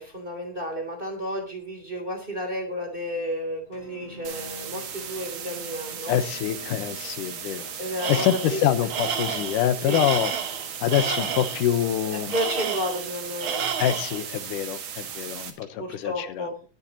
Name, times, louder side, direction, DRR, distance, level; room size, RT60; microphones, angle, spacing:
voice 1, 0.0-6.2 7.8-8.6 9.8-10.1 12.3-13.6 15.8-16.6, equal, 15° right, 2 dB, 3.0 m, -32 dB
sound 1, 3.7-13.3, left 3 dB, 50° left, 3.8 m, -47 dB
sound 2, 4.2-15.5, right 8 dB, 80° right, 3.4 m, -37 dB
voice 2, 6.1-7.7 8.1-10.3 10.8-12.3 13.8-16.5, left 11 dB, 85° left, 12 dB, 2.6 m, -25 dB
Tools, 8.0-8.6 8.9-11.6 12.3-13.1 13.4-14.2, right 7 dB, 50° right, 1.9 m, -30 dB
22.5 x 9.6 x 2.9 m, 0.34 s
omnidirectional pair, 3.6 m